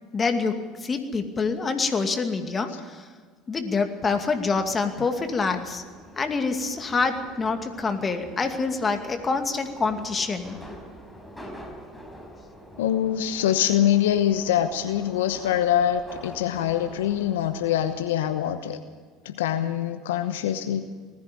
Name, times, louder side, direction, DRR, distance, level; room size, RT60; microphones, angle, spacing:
voice 1, 0.1-3.1 3.5-5.8 6.2-10.6, left 4 dB, 25° left, 6 dB, 2.4 m, -26 dB
Subway metro underground, 4.2-18.5, equal, 5° left, 5.1 m, -46 dB
voice 2, 12.8-18.8 19.2-20.9, left 10 dB, 75° left, 9 dB, 1.0 m, -24 dB
20.0 x 14.5 x 9.2 m, 1.5 s
hypercardioid pair, 70°, 0 cm